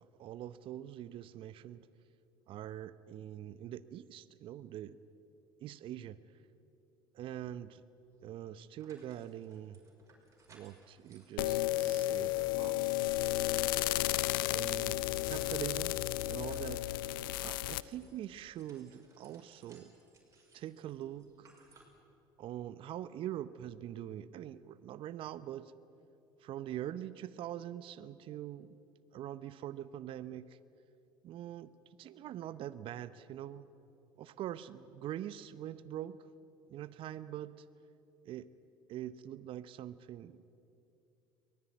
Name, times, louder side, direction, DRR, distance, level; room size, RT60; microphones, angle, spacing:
voice 1, 0.0-1.9 2.5-5.0 5.6-6.2 7.1-7.8 8.2-9.8 10.5-13.3 14.5-16.0 16.2-16.9 17.4-19.9 20.5-21.5 22.4-25.7 26.4-28.8 29.1-30.6 31.2-33.7 34.2-36.2 36.7-37.6 38.2-38.5 38.9-40.4, right 11 dB, 50° right, 15 dB, 0.8 m, -44 dB
sound 1, 8.1-8.2 8.8-15.6 16.0-22.0, right 3 dB, 25° right, 6.2 m, -63 dB
sound 2, 11.4-17.8, left 17 dB, 75° left, 0.6 m, -33 dB
23.5 x 18.5 x 9.4 m, 2.8 s
hypercardioid pair, 70°, 12 cm